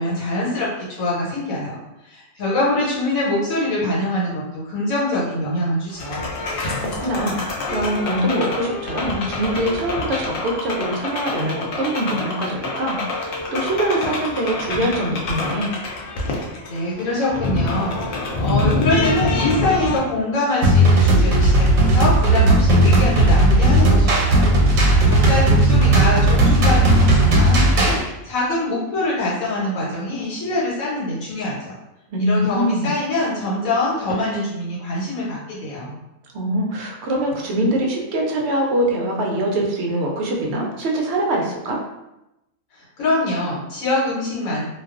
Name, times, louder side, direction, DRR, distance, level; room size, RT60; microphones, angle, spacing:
voice 1, 0.0-1.8 2.0-6.2 16.7-31.7 32.2-36.0 42.7-44.6, left 1 dB, 90° left, -7 dB, 1.2 m, -24 dB
sound 1, 5.9-20.0, left 2 dB, 65° left, 0.5 m, -26 dB
voice 2, 6.7-15.7 32.1-32.9 36.3-41.8, right 1 dB, 65° right, -1 dB, 0.7 m, -23 dB
sound 2, 20.6-28.0, right 1 dB, 90° right, 1.1 m, -15 dB
2.3 x 2.3 x 2.4 m, 0.92 s
omnidirectional pair, 1.4 m